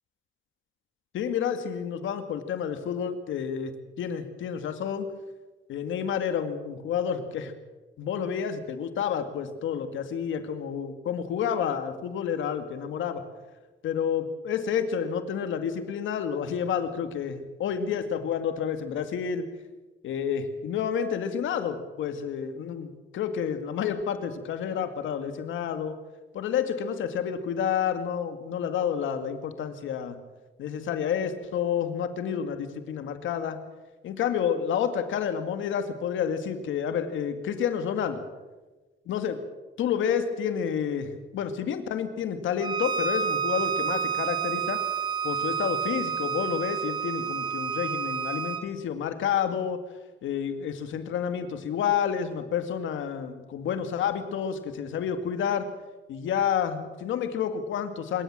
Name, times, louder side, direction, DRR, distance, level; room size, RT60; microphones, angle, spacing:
voice 1, 1.1-3.7 4.0-5.1 5.7-7.5 8.0-13.2 13.8-19.5 20.0-26.0 26.3-30.2 30.6-33.6 34.0-38.2 39.1-39.4 39.8-44.8 45.2-49.8 50.2-55.7 56.1-58.2, left 8 dB, 80° left, 9 dB, 2.1 m, -29 dB
Bowed string instrument, 42.6-48.7, right 7 dB, 20° right, 1.6 m, -29 dB
25.0 x 13.5 x 7.5 m, 1.2 s
cardioid pair, 90°, 20 cm